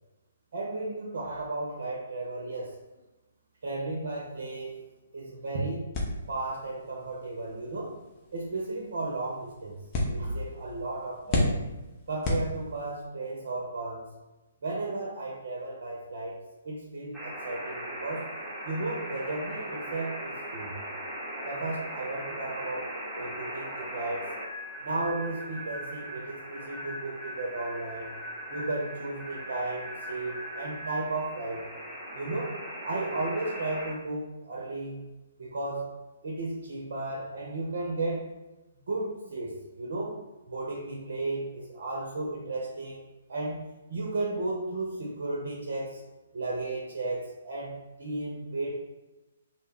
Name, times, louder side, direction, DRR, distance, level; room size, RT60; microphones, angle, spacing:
voice 1, 0.5-2.7 3.6-4.8 5.1-5.9 6.3-7.9 8.3-9.8 10.1-11.5 12.1-14.0 14.6-16.3 16.6-18.2 18.6-20.7 21.4-24.3 24.8-28.1 28.5-31.6 32.1-32.6 32.8-35.0 35.4-35.9 36.2-38.2 38.9-40.2 40.5-43.0 43.3-43.6 43.9-46.0 46.3-48.7, right 2 dB, 60° right, -1 dB, 0.5 m, -34 dB
sound 1, 5.9-13.1, left 1 dB, 30° left, 0.5 m, -34 dB
sound 2, 17.1-33.9, right 1 dB, 10° right, 0.7 m, -39 dB
2.2 x 2.1 x 3.3 m, 1.1 s
figure-of-eight pair, 130°, 0 cm